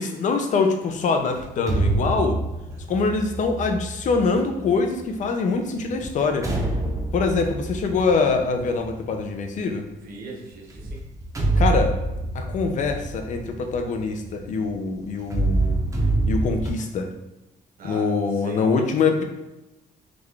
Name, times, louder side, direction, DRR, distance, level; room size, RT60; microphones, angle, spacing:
voice 1, 0.0-2.4 2.9-6.5 7.1-9.9 11.6-12.0 12.3-15.8 16.3-17.1 17.8-19.2, left 4 dB, 50° left, 5 dB, 0.5 m, -24 dB
sound 1, 1.4-5.1 5.8-9.5 10.7-14.7 15.2-16.7, right 2 dB, 20° right, 0.6 m, -26 dB
voice 2, 9.9-11.0 17.8-18.7, right 3 dB, 65° right, -1 dB, 0.9 m, -40 dB
3.7 x 2.4 x 3.2 m, 1.0 s
cardioid pair, 145°, 16 cm